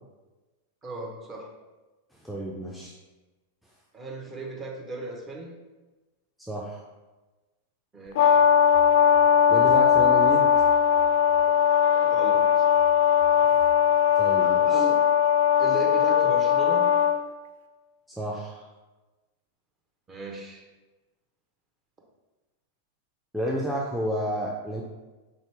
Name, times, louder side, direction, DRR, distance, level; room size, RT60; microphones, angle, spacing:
voice 1, 0.8-1.5 3.9-5.5 7.9-8.5 11.9-12.6 14.4-15.1 15.6-16.9 20.1-20.6, right 1 dB, 20° right, -1 dB, 0.9 m, -36 dB
voice 2, 2.2-2.9 6.5-6.8 9.5-10.5 14.2-14.8 18.2-18.7 23.3-24.8, equal, ahead, -4 dB, 0.5 m, -31 dB
Brass instrument, 8.2-17.2, left 8 dB, 65° left, 0.3 m, -20 dB
3.7 x 2.8 x 3.3 m, 1.2 s
hypercardioid pair, 100°, 0 cm